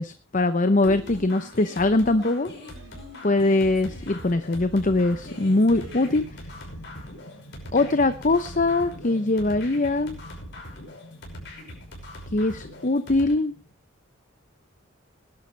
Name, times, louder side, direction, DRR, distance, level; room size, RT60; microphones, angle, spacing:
voice 1, 0.0-2.5 3.2-6.3 7.7-10.2 12.3-13.5, left 2 dB, 40° left, 11 dB, 0.8 m, -22 dB
sound 1, 0.8-13.3, left 1 dB, 60° left, 5.9 m, -41 dB
Bowed string instrument, 0.8-6.3, right 4 dB, 70° right, 4.8 m, -49 dB
sound 2, 5.3-13.7, equal, 75° left, 3.4 m, -47 dB
20.5 x 11.5 x 3.3 m, 0.31 s
head